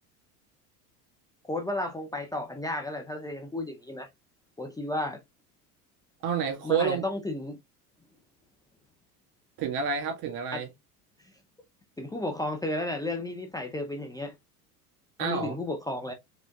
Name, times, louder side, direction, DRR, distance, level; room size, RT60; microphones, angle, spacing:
voice 1, 1.4-4.1 4.6-5.2 6.6-7.6 10.5-10.6 12.0-14.3 15.2-16.1, left 1 dB, 10° left, 0.6 m, -33 dB
voice 2, 6.2-7.0 9.6-10.7 15.2-15.5, right 7 dB, 55° right, 1.9 m, -28 dB
5.0 x 3.5 x 2.4 m
hypercardioid pair, 80°, 46 cm